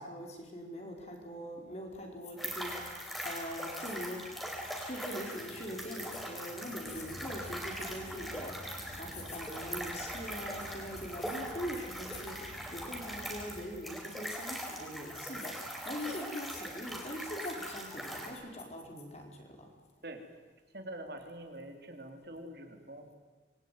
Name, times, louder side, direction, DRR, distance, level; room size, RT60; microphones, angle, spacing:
voice 1, 0.0-4.2 4.7-19.3 19.6-19.7, equal, 35° left, 2 dB, 4.9 m, -42 dB
sound 1, 2.4-18.3, equal, ahead, 4.4 m, -41 dB
Rain, 6.8-13.6, equal, 75° left, 4.5 m, -50 dB
voice 2, 20.7-23.1, right 1 dB, 55° right, 5 dB, 3.4 m, -45 dB
26.5 x 22.5 x 9.4 m, 1.3 s
head